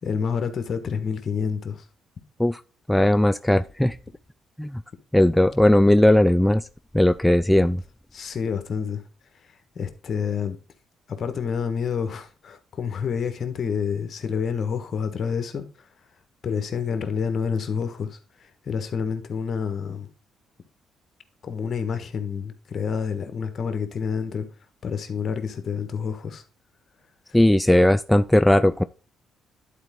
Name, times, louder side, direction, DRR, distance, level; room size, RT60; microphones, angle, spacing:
voice 1, 0.0-1.8 8.1-9.0 9.7-10.6 11.1-15.6 16.4-20.1 21.4-24.5 24.8-26.4, left 6 dB, 50° left, 1.5 m, -28 dB
voice 2, 2.9-4.0 4.6-4.8 5.1-6.7 6.9-7.8 27.3-28.8, left 1 dB, 5° left, 0.3 m, -18 dB
11.0 x 4.5 x 3.8 m
cardioid pair, 90°, 0 cm